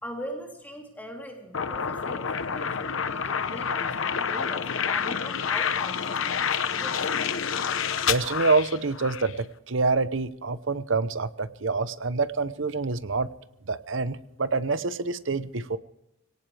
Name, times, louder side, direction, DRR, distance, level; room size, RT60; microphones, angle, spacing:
voice 1, 0.0-7.2, equal, 10° left, 0 dB, 3.4 m, -41 dB
sound 1, 1.5-9.3, left 7 dB, 70° left, 0.9 m, -28 dB
voice 2, 8.1-13.3 13.7-15.8, right 3 dB, 65° right, 14 dB, 0.9 m, -26 dB
23.5 x 18.0 x 3.4 m, 0.85 s
head